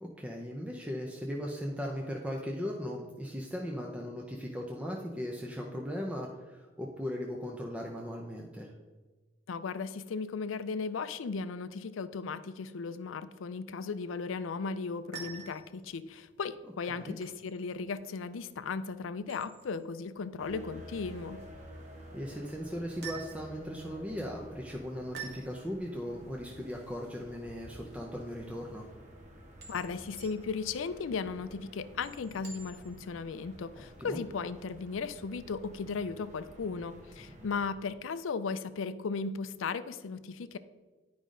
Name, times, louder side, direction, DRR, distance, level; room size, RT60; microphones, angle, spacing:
voice 1, 0.0-8.7 16.9-17.2 22.1-28.9 33.8-34.2, equal, 5° right, -1 dB, 0.6 m, -38 dB
voice 2, 9.5-21.4 29.7-40.6, left 5 dB, 80° left, 13 dB, 0.4 m, -36 dB
sound 1, 14.8-33.1, right 5 dB, 55° right, 1.5 m, -51 dB
sound 2, 20.4-37.7, equal, 40° right, 1.0 m, -51 dB
10.0 x 5.2 x 3.8 m, 1.3 s
head